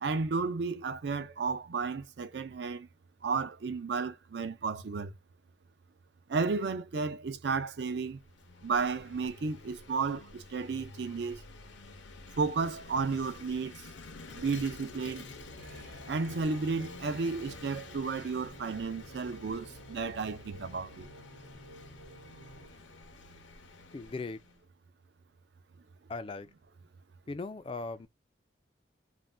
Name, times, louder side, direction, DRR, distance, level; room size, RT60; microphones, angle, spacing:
voice 1, 0.0-2.9 3.2-5.1 6.3-8.2 8.6-11.4 12.4-13.9 14.3-15.2 16.1-21.1, right 4 dB, 65° right, 0.5 m, -33 dB
Vehicle / Engine, 8.0-24.6, left 3 dB, 75° left, 0.6 m, -50 dB
sound 1, 14.3-22.7, right 1 dB, 85° right, 0.9 m, -52 dB
voice 2, 23.9-24.4 26.1-26.5 27.3-28.1, left 3 dB, 30° left, 0.3 m, -38 dB
2.6 x 2.1 x 3.2 m
head